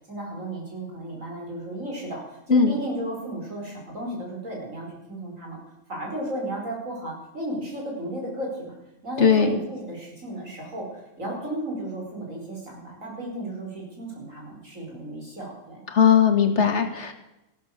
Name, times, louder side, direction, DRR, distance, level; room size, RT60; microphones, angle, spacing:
voice 1, 0.1-5.6 5.9-8.7 9.0-15.8, right 1 dB, 80° right, -1 dB, 5.6 m, -34 dB
voice 2, 9.2-9.6 15.9-17.1, left 6 dB, 60° left, 6 dB, 2.0 m, -18 dB
14.5 x 12.5 x 6.7 m, 0.91 s
omnidirectional pair, 1.3 m